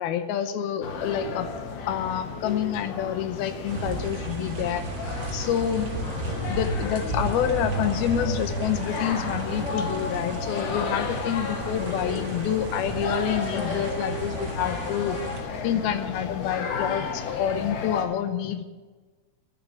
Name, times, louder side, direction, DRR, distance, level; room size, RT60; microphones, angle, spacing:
voice 1, 0.0-1.5 1.9-4.8 5.3-5.9 6.5-15.2 15.6-18.6, left 9 dB, 80° left, 10 dB, 2.6 m, -28 dB
sound 1, 0.8-18.1, left 5 dB, 65° left, 2.5 m, -33 dB
sound 2, 3.7-15.4, right 2 dB, 45° right, 2.4 m, -34 dB
sound 3, 8.8-13.9, right 8 dB, 65° right, 2.3 m, -42 dB
11.5 x 10.5 x 7.8 m, 1.3 s
omnidirectional pair, 4.5 m